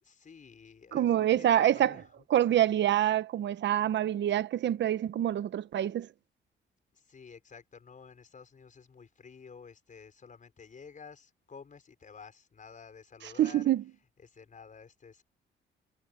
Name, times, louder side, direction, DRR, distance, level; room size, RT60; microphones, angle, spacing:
voice 1, 0.0-2.1 6.9-13.7 14.2-15.2, left 5 dB, 40° left, 5.7 m, -51 dB
voice 2, 0.9-2.0 2.3-6.1 13.4-13.8, right 11 dB, 65° right, 1.0 m, -26 dB
cardioid pair, 90°, 20 cm